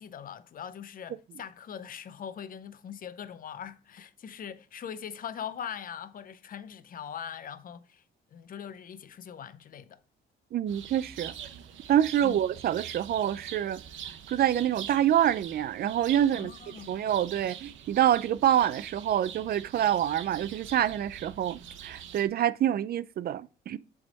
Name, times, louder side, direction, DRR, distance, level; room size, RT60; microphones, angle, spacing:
voice 1, 0.0-8.0 8.3-10.0 12.2-12.4 16.3-16.9, left 8 dB, 45° left, 0.6 m, -41 dB
voice 2, 10.5-11.3 11.9-13.8 14.3-16.5 16.9-23.8, right 11 dB, 50° right, 0.4 m, -26 dB
sound 1, 10.7-22.3, right 9 dB, 75° right, 0.9 m, -44 dB
7.9 x 3.5 x 4.0 m
cardioid pair, 90°, 20 cm